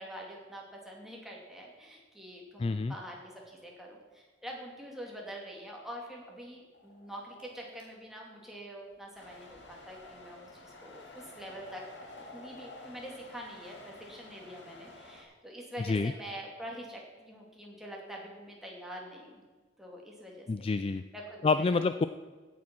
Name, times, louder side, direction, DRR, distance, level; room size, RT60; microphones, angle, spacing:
voice 1, 0.0-12.0 12.3-19.4 19.8-20.7 21.1-21.7, equal, ahead, -2 dB, 2.5 m, -45 dB
voice 2, 2.6-2.9 15.8-16.1 20.5-21.0 21.4-22.0, left 4 dB, 30° left, 11 dB, 0.3 m, -28 dB
sound 1, 6.7-7.8 8.9-9.1 10.0-10.1 10.7-12.9, left 2 dB, 50° left, 3.0 m, -52 dB
sound 2, 9.2-15.2, left 2 dB, 65° left, 2.2 m, -52 dB
16.0 x 7.2 x 6.1 m, 1.3 s
head